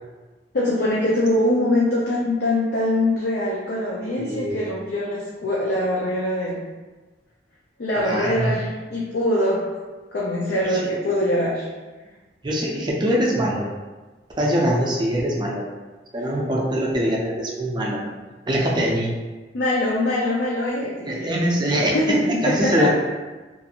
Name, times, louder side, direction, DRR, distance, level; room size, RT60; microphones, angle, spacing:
voice 1, 0.5-6.6 7.8-9.7 10.1-11.7 19.5-21.3 21.7-22.9, left 1 dB, 65° left, -5 dB, 0.5 m, -23 dB
voice 2, 4.2-4.6 8.0-8.5 10.6-10.8 12.4-13.7 14.4-15.7 16.1-18.1 18.5-19.1 21.1-22.0 22.4-22.9, equal, 25° right, -3 dB, 0.4 m, -23 dB
2.5 x 2.4 x 2.8 m, 1.3 s
head